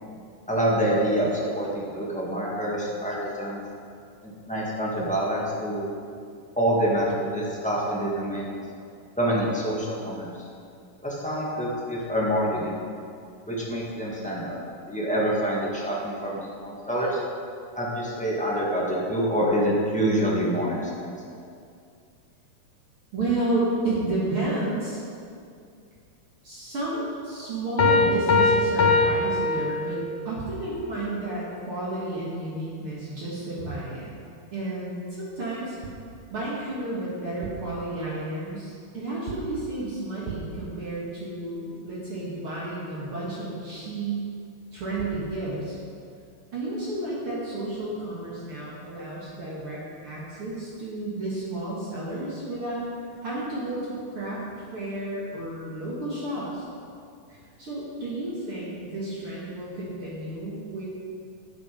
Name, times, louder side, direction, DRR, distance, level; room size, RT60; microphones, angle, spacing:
voice 1, 0.5-3.6 4.2-5.9 6.6-8.4 9.2-10.3 11.0-12.7 13.4-14.6 14.9-17.2 17.7-21.1, right 1 dB, 5° left, -6 dB, 1.2 m, -26 dB
voice 2, 23.1-25.0 26.4-30.0 30.2-34.1 34.5-35.8 36.3-44.2 44.7-45.8 46.5-52.8 53.2-54.5 54.7-56.6 57.3-60.8, right 2 dB, 50° right, -7 dB, 2.6 m, -31 dB
Piano, 27.8-30.3, left 3 dB, 80° left, 2.8 m, -21 dB
sound 1, 35.8-36.1 37.2-37.8 39.3-39.6 40.2-40.7 44.7-44.8 45.0-45.3, right 5 dB, 70° right, 2.2 m, -39 dB
11.0 x 8.0 x 5.2 m, 2.3 s
omnidirectional pair, 3.3 m